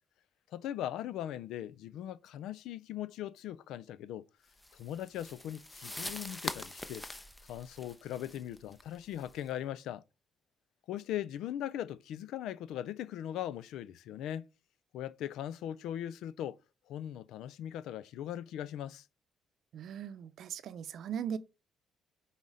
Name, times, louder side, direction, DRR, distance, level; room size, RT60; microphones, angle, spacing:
voice 1, 0.5-4.3 4.7-7.1 7.5-10.0 10.9-14.5 14.9-16.6 16.9-19.1, left 11 dB, 85° left, 0.4 m, -39 dB
sound 1, 4.6-9.5, left 1 dB, 10° left, 0.6 m, -44 dB
voice 2, 19.7-21.4, right 8 dB, 70° right, 0.6 m, -39 dB
5.6 x 4.0 x 4.7 m
cardioid pair, 90°, 0 cm